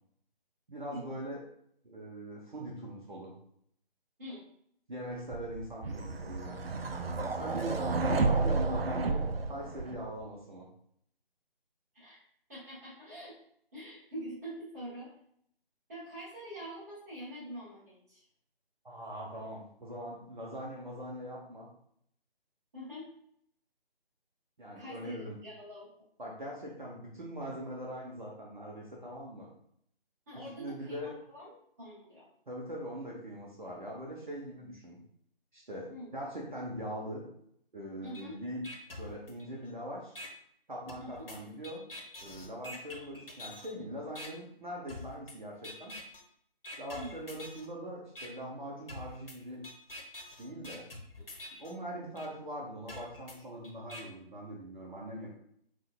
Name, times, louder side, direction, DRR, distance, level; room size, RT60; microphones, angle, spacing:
voice 1, 0.7-1.4 1.8-3.3 4.9-6.6 7.2-10.7 18.8-21.7 24.6-25.4 26.2-29.5 30.6-31.1 32.5-35.0 35.5-37.2 37.7-38.6 39.0-40.1 40.7-41.9 42.2-45.9 46.8-49.6 50.4-50.9 51.6-55.4, equal, 50° right, -3 dB, 0.9 m, -41 dB
sound 1, 5.3-10.2, right 3 dB, 75° right, 0.5 m, -31 dB
voice 2, 12.5-13.3 13.7-15.1 15.9-18.2 22.7-23.1 24.7-25.9 30.3-31.5 31.8-32.3 35.9-36.1 38.0-38.4 41.0-41.1 42.7-42.8 46.9-47.1, equal, 15° right, -10 dB, 1.2 m, -44 dB
sound 2, 38.1-38.2 38.6-39.7 40.2-40.3 40.9-43.7 44.2-44.3 44.9-45.3 45.6-46.2 46.6-47.7 48.2-48.3 48.9-51.7 52.2-52.3 52.9-54.0, left 2 dB, 70° left, 1.0 m, -46 dB
6.2 x 2.2 x 2.3 m, 0.68 s
figure-of-eight pair, 155°, 30 cm